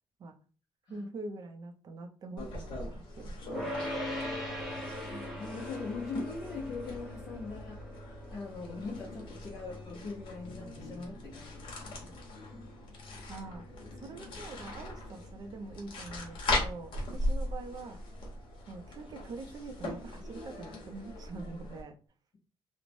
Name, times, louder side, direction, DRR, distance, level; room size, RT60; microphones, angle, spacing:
voice 1, 0.9-4.2 13.3-13.7 14.0-18.0 18.7-22.0, right 3 dB, 45° right, 0.4 m, -45 dB
sound 1, 2.4-21.8, left 1 dB, 60° left, 0.9 m, -40 dB
sound 2, 3.5-14.8, left 1 dB, ahead, 0.7 m, -42 dB
voice 2, 5.1-12.2, left 4 dB, 45° left, 0.6 m, -42 dB
3.0 x 2.0 x 2.5 m
cardioid pair, 160°, 9 cm